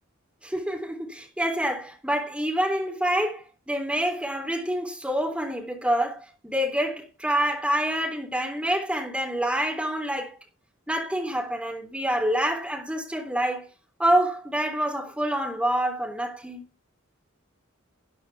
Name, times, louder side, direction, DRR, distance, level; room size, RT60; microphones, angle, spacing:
voice 1, 0.4-10.4 10.9-13.7 14.0-16.7, right 1 dB, 5° right, 3.5 m, -27 dB
13.0 x 10.0 x 3.6 m
head